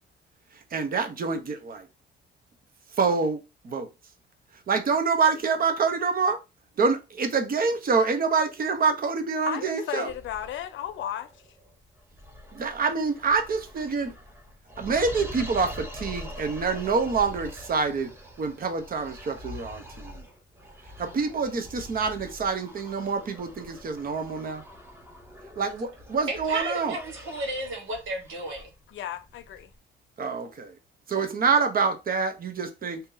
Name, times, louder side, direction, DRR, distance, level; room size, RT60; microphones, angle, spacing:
voice 1, 0.7-1.9 2.9-3.4 3.6-3.9 4.7-6.4 6.8-10.1 12.5-14.1 14.8-18.1 18.4-20.2 21.0-24.6 25.6-27.0 30.2-30.7 31.1-33.0, right 5 dB, 45° right, 0.8 m, -26 dB
voice 2, 9.5-11.3 28.9-29.7, left 10 dB, 75° left, 0.6 m, -34 dB
sound 1, 10.1-29.7, left 1 dB, 10° right, 0.9 m, -44 dB
voice 3, 26.3-28.7, right 1 dB, 85° right, 1.3 m, -33 dB
2.8 x 2.7 x 3.8 m
cardioid pair, 90°, 20 cm